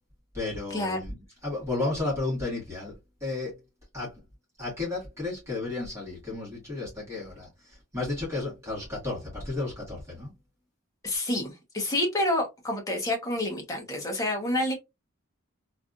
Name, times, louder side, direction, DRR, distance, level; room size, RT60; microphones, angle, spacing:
voice 1, 0.3-1.2 1.4-3.6 3.9-4.1 4.6-10.3, left 2 dB, 15° right, 1.7 m, -33 dB
voice 2, 11.0-14.7, left 1 dB, 15° left, 0.9 m, -28 dB
3.3 x 2.5 x 2.3 m
head